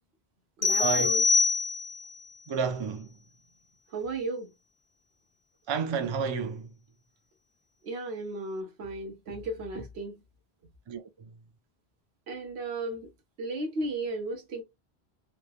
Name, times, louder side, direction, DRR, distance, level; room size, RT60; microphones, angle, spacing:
sound 1, 0.6-2.1, left 4 dB, 45° left, 0.5 m, -25 dB
voice 1, 0.6-1.2 3.9-4.5 7.8-10.2 12.3-13.1 13.4-14.6, right 2 dB, 85° right, 1.1 m, -34 dB
voice 2, 2.5-3.2 5.7-6.7 10.9-11.4, right 6 dB, 50° right, 0.3 m, -31 dB
3.2 x 2.1 x 2.3 m
omnidirectional pair, 1.1 m